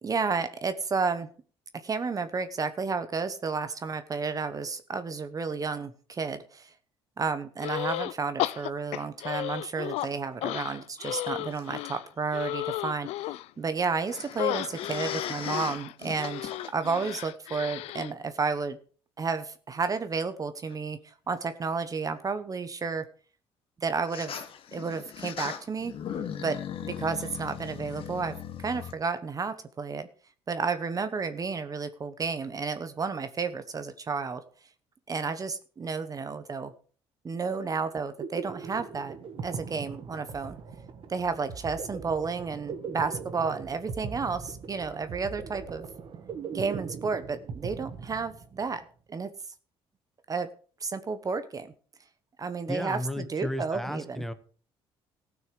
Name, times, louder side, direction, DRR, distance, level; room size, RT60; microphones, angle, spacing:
voice 1, 0.0-1.3 1.8-6.7 7.2-13.1 13.6-18.8 19.2-23.1 23.8-24.3 24.7-25.9 26.4-30.1 30.5-34.4 35.1-36.7 37.2-40.6 41.1-45.9 46.5-48.8 49.1-49.3 50.3-50.5 50.8-51.7 52.4-54.2, right 5 dB, 35° right, 11 dB, 1.0 m, -32 dB
sound 1, 7.6-8.1 8.4-10.1 10.4-13.5 14.4-18.1, left 16 dB, 80° left, 0.5 m, -33 dB
sound 2, 10.0-10.2 11.5-11.6 14.0-17.1 17.8-17.9 20.7-20.8 24.1-28.9, left 8 dB, 60° left, 1.3 m, -39 dB
sound 3, 37.9-48.7, right 5 dB, 50° right, 1.3 m, -40 dB
voice 2, 52.7-54.3, left 1 dB, ahead, 10 dB, 1.1 m, -33 dB
15.0 x 6.3 x 5.3 m, 0.42 s
cardioid pair, 85°, 11 cm